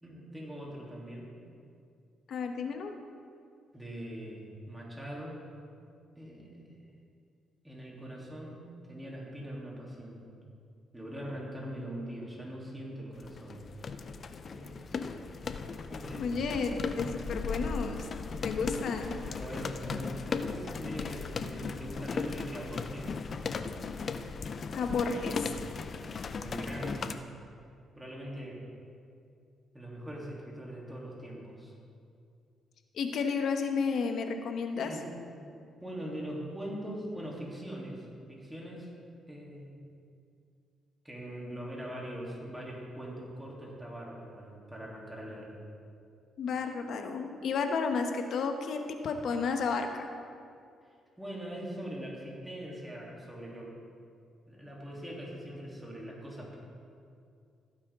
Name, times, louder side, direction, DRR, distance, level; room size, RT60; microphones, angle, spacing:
voice 1, 0.0-1.3 3.7-5.4 6.2-6.9 7.6-10.2 10.9-13.6 14.4-15.0 15.9-16.4 19.3-23.2 24.2-24.5 26.4-27.1 27.9-28.6 29.7-31.7 34.8-35.1 35.8-38.9 39.3-39.8 41.0-45.6 51.2-53.8 54.5-56.6, equal, 5° right, -4 dB, 3.2 m, -42 dB
voice 2, 2.3-2.9 16.2-18.1 18.4-19.2 24.7-25.5 32.9-34.9 46.4-50.1, left 5 dB, 65° left, 5 dB, 1.1 m, -32 dB
sound 1, 13.2-27.1, left 5 dB, 45° left, 0.6 m, -37 dB
16.0 x 8.8 x 3.7 m, 2.4 s
cardioid pair, 90°, 0 cm